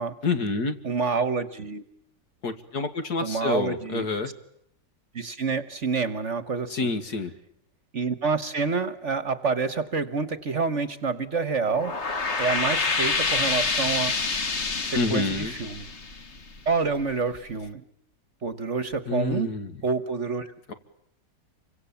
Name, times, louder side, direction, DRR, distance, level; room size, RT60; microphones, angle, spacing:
voice 1, 0.2-0.8 2.4-4.3 6.7-7.3 14.9-15.5 19.1-19.7 20.7-20.8, left 3 dB, 60° left, 8 dB, 2.5 m, -28 dB
voice 2, 0.8-1.8 3.2-4.1 5.1-6.9 7.9-11.9 12.4-14.1 14.8-15.9 16.7-17.8 18.4-19.5 19.8-20.5, right 4 dB, 45° right, 12 dB, 1.5 m, -27 dB
sound 1, 11.6-16.9, left 4 dB, 40° left, 1.7 m, -27 dB
29.0 x 25.0 x 7.1 m, 0.76 s
omnidirectional pair, 1.9 m